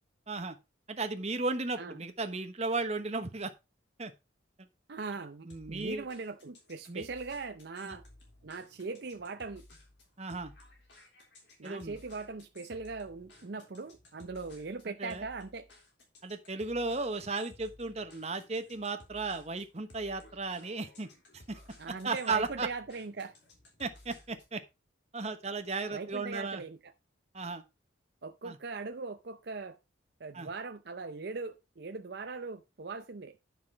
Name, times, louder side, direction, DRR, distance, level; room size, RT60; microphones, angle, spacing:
voice 1, 0.9-3.5 4.0-4.1 5.5-6.1 6.9-7.1 7.9-8.0 10.2-10.5 11.6-12.0 14.9-15.3 16.2-21.1 21.5-21.6 22.0-22.7 23.8-24.6 25.1-26.6 27.3-27.6 28.4-28.6 30.3-30.5, right 3 dB, 35° right, 1.0 m, -35 dB
voice 2, 4.9-8.0 8.4-9.6 11.6-15.7 21.8-23.3 25.9-26.9 28.2-29.8 30.2-33.4, right 4 dB, 55° right, 0.6 m, -40 dB
sound 1, 5.5-24.6, left 1 dB, 60° left, 3.7 m, -57 dB
9.9 x 5.9 x 4.5 m
head